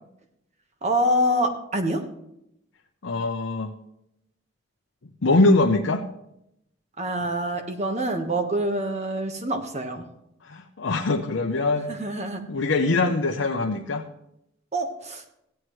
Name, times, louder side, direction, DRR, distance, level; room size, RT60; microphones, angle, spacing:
voice 1, 0.8-2.1 7.0-10.1 11.9-12.5 14.7-15.2, right 1 dB, 35° right, 5 dB, 1.2 m, -26 dB
voice 2, 3.0-3.7 5.2-6.0 10.5-11.9 12.5-14.1, left 2 dB, 85° left, 2 dB, 0.7 m, -22 dB
16.0 x 9.3 x 3.1 m, 0.80 s
head